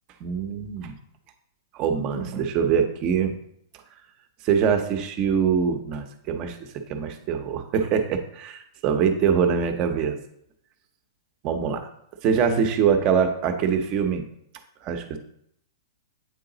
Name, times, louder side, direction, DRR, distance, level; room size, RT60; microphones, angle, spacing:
voice 1, 0.2-0.9 1.7-3.3 4.4-10.2 11.4-11.9 12.2-14.2 14.8-15.2, right 7 dB, 35° right, 7 dB, 0.8 m, -24 dB
8.4 x 3.9 x 3.9 m, 0.72 s
hypercardioid pair, 130°, 2 cm